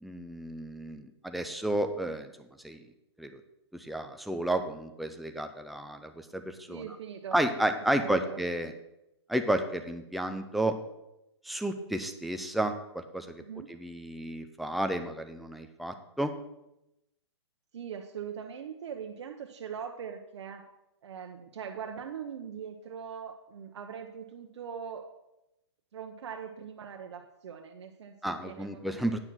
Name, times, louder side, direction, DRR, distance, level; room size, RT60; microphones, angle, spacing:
voice 1, 0.0-2.3 2.6-2.8 3.2-3.4 3.7-6.8 7.3-8.7 9.3-10.7 11.4-13.4 13.7-16.3 28.2-29.2, right 1 dB, ahead, 6 dB, 0.4 m, -32 dB
voice 2, 6.7-8.4 13.4-13.7 17.7-20.6 21.0-25.0 25.9-29.2, right 7 dB, 75° right, 3 dB, 0.9 m, -41 dB
8.9 x 6.0 x 6.2 m, 0.89 s
hypercardioid pair, 155°, 15 cm